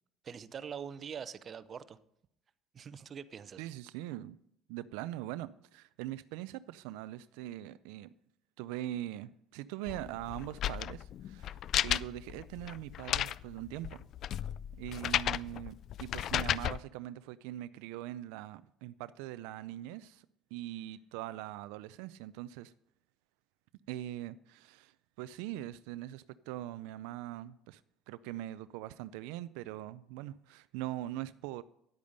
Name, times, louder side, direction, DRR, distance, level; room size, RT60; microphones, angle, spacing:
voice 1, 0.2-2.0 2.7-3.6, right 7 dB, 35° right, 0.7 m, -44 dB
voice 2, 3.6-4.4 4.7-8.1 8.6-13.9 14.8-20.3 20.5-22.7 23.9-27.8 28.1-31.6, right 14 dB, 90° right, 0.4 m, -42 dB
sound 1, 9.9-16.8, left 11 dB, 50° left, 0.3 m, -34 dB
10.5 x 8.5 x 5.3 m
cardioid pair, 120°, 0 cm